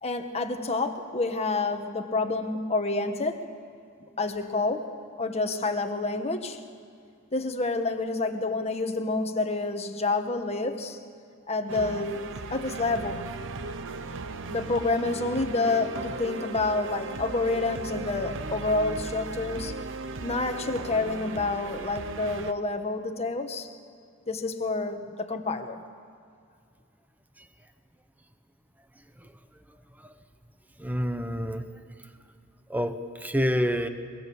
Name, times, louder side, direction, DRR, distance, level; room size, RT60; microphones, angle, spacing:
voice 1, 0.0-3.4 4.2-4.9 5.2-6.6 7.3-11.0 11.5-12.2 12.5-13.3 14.5-19.7 20.2-23.7 24.3-25.8, left 3 dB, 30° left, 6 dB, 1.3 m, -28 dB
sound 1, 11.7-22.5, right 3 dB, 60° right, 0.8 m, -37 dB
voice 2, 30.8-31.7 32.7-33.9, equal, 10° right, 9 dB, 1.0 m, -27 dB
23.0 x 22.0 x 7.1 m, 2.3 s
head